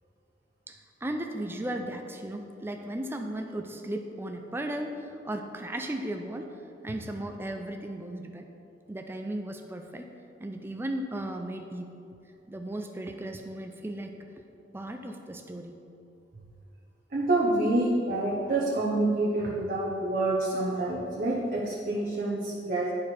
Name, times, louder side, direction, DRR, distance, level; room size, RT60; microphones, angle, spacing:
voice 1, 0.7-6.5 6.8-8.5 8.9-10.1 10.4-11.9 12.5-14.2 14.7-15.8 17.6-17.7, right 1 dB, 15° right, 4 dB, 0.4 m, -36 dB
voice 2, 17.1-22.9, right 2 dB, 50° right, -5 dB, 1.0 m, -27 dB
10.5 x 4.7 x 4.4 m, 2.6 s
head